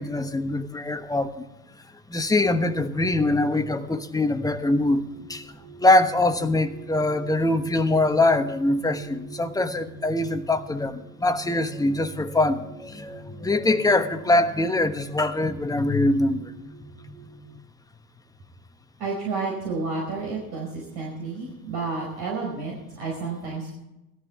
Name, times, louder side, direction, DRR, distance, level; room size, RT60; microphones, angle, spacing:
voice 1, 0.0-1.4 2.1-5.5 5.8-16.5, left 2 dB, 5° left, 1.1 m, -23 dB
sound 1, 4.8-17.6, right 2 dB, 20° right, 2.0 m, -44 dB
voice 2, 19.0-23.7, right 4 dB, 50° right, 5.0 m, -31 dB
19.0 x 13.5 x 3.4 m
figure-of-eight pair, 75°, 49 cm